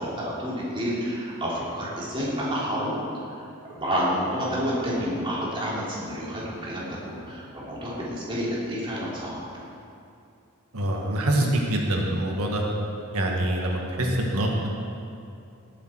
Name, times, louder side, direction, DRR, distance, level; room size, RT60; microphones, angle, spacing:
voice 1, 0.0-3.0 3.3-3.4 3.7-9.4, equal, 25° right, -6 dB, 3.1 m, -29 dB
voice 2, 10.7-12.6 13.1-14.7, right 1 dB, 80° right, 0 dB, 1.6 m, -25 dB
17.5 x 8.3 x 4.5 m, 2.6 s
head